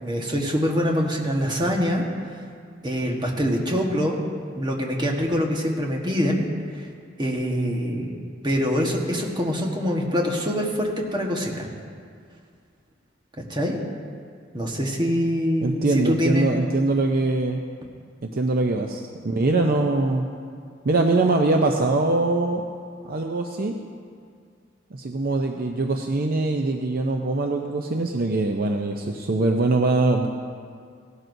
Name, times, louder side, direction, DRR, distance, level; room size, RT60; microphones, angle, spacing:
voice 1, 0.0-2.0 2.8-4.2 4.5-6.5 7.2-8.1 8.4-11.7 13.4-13.8 14.5-16.5, equal, 25° right, 0 dB, 1.3 m, -24 dB
voice 2, 15.6-17.6 18.2-20.3 20.8-22.6 23.0-23.8 24.9-30.3, right 2 dB, 50° right, 3 dB, 0.6 m, -22 dB
17.5 x 12.0 x 2.7 m, 2.2 s
head